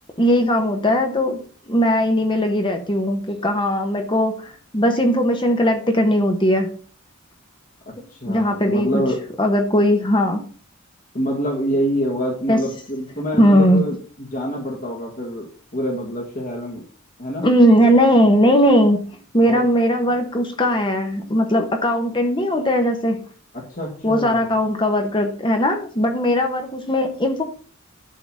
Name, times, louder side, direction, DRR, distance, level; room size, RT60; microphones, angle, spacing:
voice 1, 0.2-6.7 8.2-9.0 9.4-10.4 12.5-12.6 13.4-13.8 17.4-19.0 19.3-23.2 24.0-27.4, equal, 25° left, 4 dB, 1.2 m, -18 dB
voice 2, 8.1-9.2 11.1-16.8 17.2-17.5 19.4-19.6 23.5-24.5, equal, 40° left, -1 dB, 1.9 m, -26 dB
11.5 x 4.0 x 6.2 m, 0.42 s
head